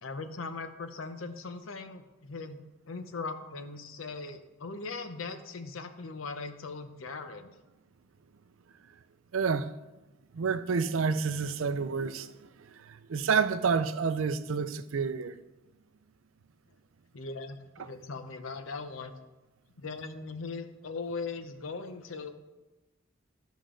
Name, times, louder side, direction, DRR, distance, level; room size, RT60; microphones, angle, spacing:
voice 1, 0.0-2.6 2.9-7.5 17.1-19.1 19.8-22.3, left 4 dB, 85° left, 0.8 m, -39 dB
voice 2, 9.3-9.7 10.3-12.3 12.8-15.4, right 5 dB, 80° right, 0.5 m, -29 dB
12.5 x 5.2 x 3.8 m
head